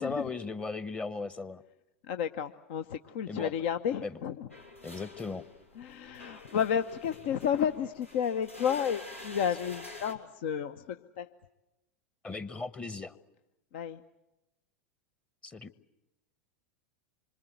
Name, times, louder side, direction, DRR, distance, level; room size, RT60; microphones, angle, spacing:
voice 1, 0.0-1.6 3.3-3.5 4.0-4.2 4.8-5.4 6.0-6.1 12.2-13.2 15.4-15.7, left 3 dB, 15° left, 15 dB, 1.1 m, -37 dB
voice 2, 2.1-4.3 5.8-11.3 13.7-14.0, left 8 dB, 55° left, 10 dB, 0.9 m, -31 dB
sound 1, 4.5-10.1, left 2 dB, 85° left, 2.9 m, -48 dB
26.0 x 25.0 x 8.1 m, 0.96 s
figure-of-eight pair, 90°, 7 cm